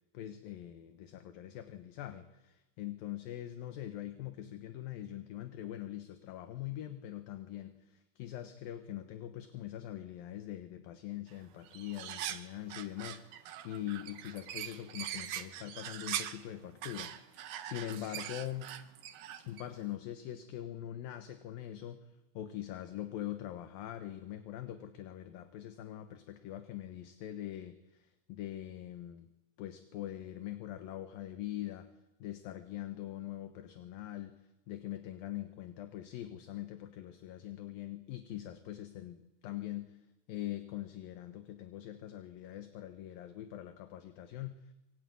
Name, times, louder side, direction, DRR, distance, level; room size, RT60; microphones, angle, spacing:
voice 1, 0.1-18.7 19.5-22.0 22.3-29.3 29.6-31.9 32.2-34.3 34.7-40.0 40.3-44.6, left 13 dB, 70° left, 9 dB, 2.9 m, -43 dB
sound 1, 11.3-11.4 11.6-16.5 16.8-19.7, right 11 dB, 70° right, 3.0 m, -42 dB
25.5 x 22.5 x 9.5 m, 0.94 s
omnidirectional pair, 4.5 m